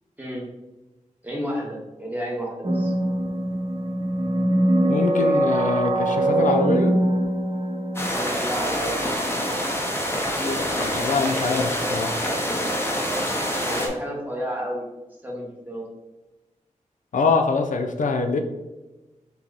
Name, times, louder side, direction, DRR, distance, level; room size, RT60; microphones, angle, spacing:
voice 1, 1.2-2.9 8.1-9.0 13.6-14.9 15.2-15.9, equal, 15° right, -2 dB, 1.2 m, -31 dB
sound 1, 2.6-8.1, right 1 dB, 50° right, 0.7 m, -22 dB
voice 2, 4.9-7.0 10.4-12.1 17.1-18.4, left 3 dB, 80° left, 5 dB, 0.4 m, -24 dB
sound 2, 7.9-13.9, equal, 20° left, 0.8 m, -26 dB
3.7 x 3.0 x 3.9 m, 1.1 s
wide cardioid pair, 105°, 13 cm